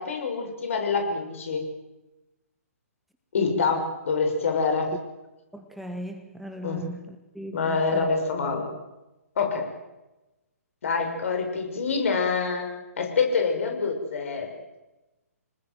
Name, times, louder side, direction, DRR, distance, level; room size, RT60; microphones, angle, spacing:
voice 1, 0.0-1.6 3.3-4.9 6.6-6.8 7.5-8.7 9.4-9.7 10.8-12.7 13.0-14.5, left 4 dB, 55° left, 4 dB, 6.4 m, -26 dB
voice 2, 5.5-8.1, equal, ahead, 5 dB, 1.4 m, -38 dB
27.0 x 20.0 x 7.7 m, 1.0 s
figure-of-eight pair, 130°, 8 cm